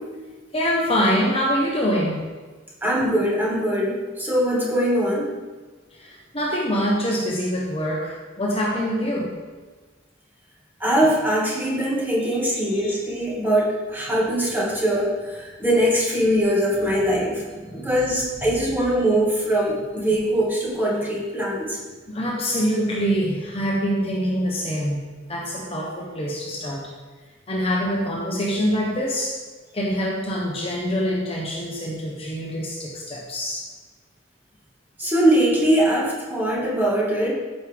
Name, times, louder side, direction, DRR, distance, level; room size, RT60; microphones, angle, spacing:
voice 1, 0.5-2.2 5.9-9.4 12.2-13.0 16.2-16.3 16.7-17.9 22.1-25.0 25.3-26.9 27.5-29.4 29.7-33.6, equal, 30° left, -2 dB, 1.2 m, -25 dB
voice 2, 2.8-5.3 10.8-17.3 17.7-21.8 35.0-37.3, right 1 dB, 10° right, -4 dB, 2.0 m, -22 dB
13.5 x 6.5 x 3.6 m, 1.4 s
head